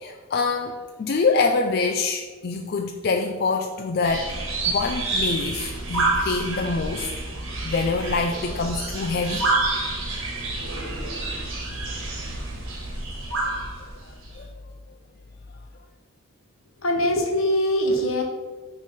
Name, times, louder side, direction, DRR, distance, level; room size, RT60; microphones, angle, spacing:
voice 1, 0.0-4.4 4.6-7.1 7.6-9.5 14.4-14.5, left 4 dB, 45° left, 4 dB, 0.3 m, -25 dB
sound 1, 4.0-14.4, right 2 dB, 70° right, 1.5 m, -28 dB
voice 2, 16.8-18.2, equal, 75° left, 2 dB, 1.2 m, -22 dB
9.4 x 3.3 x 4.2 m, 1.5 s
head